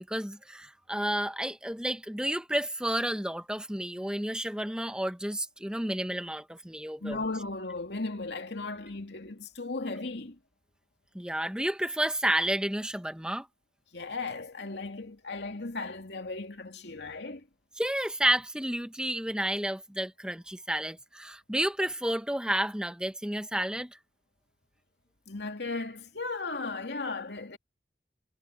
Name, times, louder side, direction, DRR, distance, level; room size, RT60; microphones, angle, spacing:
voice 1, 0.0-7.2 11.1-13.5 17.8-24.0, right 1 dB, 5° right, 1.0 m, -31 dB
voice 2, 7.0-10.4 13.9-17.5 25.3-27.6, left 3 dB, 75° left, 2.5 m, -36 dB
head